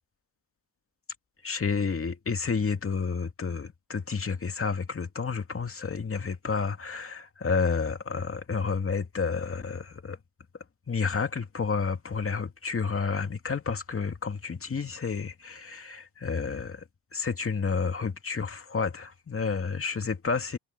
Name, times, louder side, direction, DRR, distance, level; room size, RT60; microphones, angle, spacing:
voice 1, 1.4-10.2 10.9-16.8 17.1-20.6, left 5 dB, 30° left, 2.5 m, -30 dB
cardioid pair, 95°, 45 cm